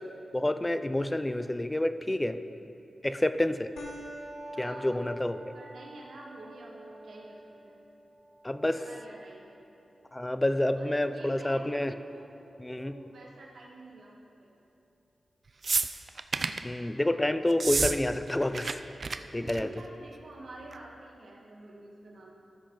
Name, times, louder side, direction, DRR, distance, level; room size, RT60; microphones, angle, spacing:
voice 1, 0.3-2.4 3.0-3.7 4.6-5.5 8.4-8.8 10.1-11.9 12.6-13.0 16.6-18.8 19.3-19.7, left 1 dB, 15° left, 10 dB, 0.4 m, -28 dB
voice 2, 2.4-2.8 4.5-5.0 5.5-7.9 8.7-9.5 10.8-12.4 12.8-14.6 16.4-17.0 19.6-22.3, right 2 dB, 80° right, -3 dB, 1.8 m, -49 dB
sound 1, 3.8-12.7, right 1 dB, 80° left, 1.1 m, -49 dB
sound 2, 15.6-16.6 17.5-18.0 18.2-18.7 19.0-19.2 19.5-19.8 20.7-20.8, right 4 dB, 55° right, 0.4 m, -29 dB
13.5 x 6.4 x 4.9 m, 2.7 s
wide cardioid pair, 80°, 0 cm